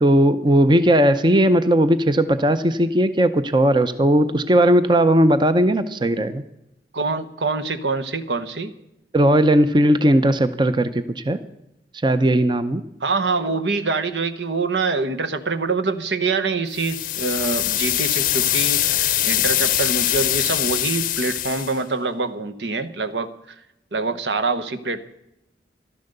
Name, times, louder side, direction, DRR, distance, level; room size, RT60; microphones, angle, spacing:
voice 1, 0.0-6.4 9.1-11.4 12.0-12.8, right 1 dB, 25° right, 11 dB, 0.6 m, -17 dB
voice 2, 6.9-8.7 13.0-23.6 23.9-25.0, right 3 dB, 80° right, 11 dB, 1.1 m, -25 dB
sound 1, 16.7-21.8, left 13 dB, 50° left, 0.6 m, -22 dB
14.5 x 12.5 x 6.7 m, 0.85 s
head